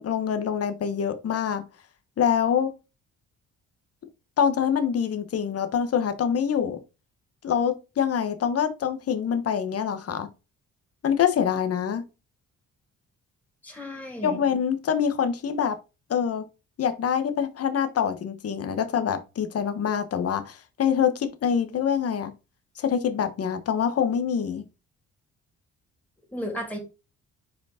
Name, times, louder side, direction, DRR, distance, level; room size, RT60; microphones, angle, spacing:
voice 1, 0.0-1.6 2.2-2.7 4.4-6.8 7.4-10.3 11.0-12.0 14.2-15.8 16.1-16.4 16.8-22.3 22.8-24.6, left 8 dB, 50° left, 1.1 m, -25 dB
voice 2, 13.6-14.4 26.3-26.8, equal, 5° left, 2.8 m, -34 dB
5.0 x 5.0 x 4.2 m
cardioid pair, 90°, 30 cm